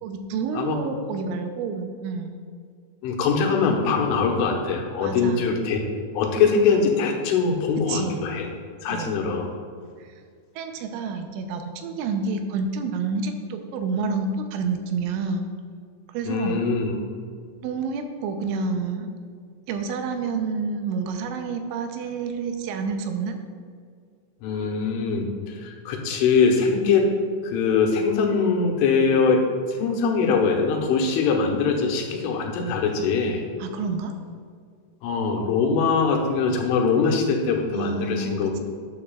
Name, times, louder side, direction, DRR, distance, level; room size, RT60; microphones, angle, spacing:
voice 1, 0.0-2.4 5.0-5.5 7.9-8.2 8.9-9.2 10.6-15.5 16.1-16.7 17.6-19.1 19.7-23.4 33.6-34.1 37.7-38.6, right 4 dB, 80° right, 5 dB, 3.1 m, -29 dB
voice 2, 3.0-5.8 6.2-8.5 8.8-9.5 16.3-17.0 24.4-27.1 27.4-33.4 35.0-38.6, left 5 dB, 90° left, 1 dB, 3.6 m, -22 dB
12.5 x 9.8 x 2.4 m, 2.1 s
omnidirectional pair, 5.5 m